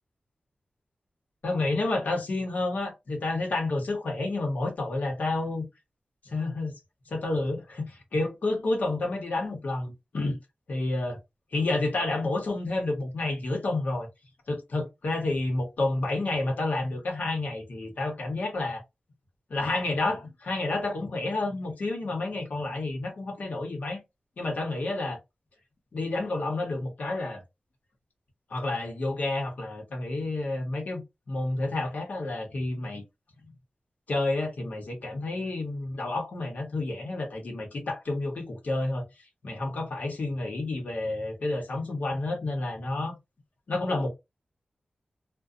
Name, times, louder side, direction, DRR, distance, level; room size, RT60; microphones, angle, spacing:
voice 1, 1.4-5.6 6.3-6.8 7.1-10.4 10.7-11.2 11.5-14.1 14.5-18.8 19.5-24.0 24.4-25.2 25.9-27.4 28.5-33.0 34.1-39.0 39.4-43.1 43.7-44.1, left 2 dB, 75° left, 1.0 m, -30 dB
2.6 x 2.2 x 2.4 m
wide cardioid pair, 115°, 3 cm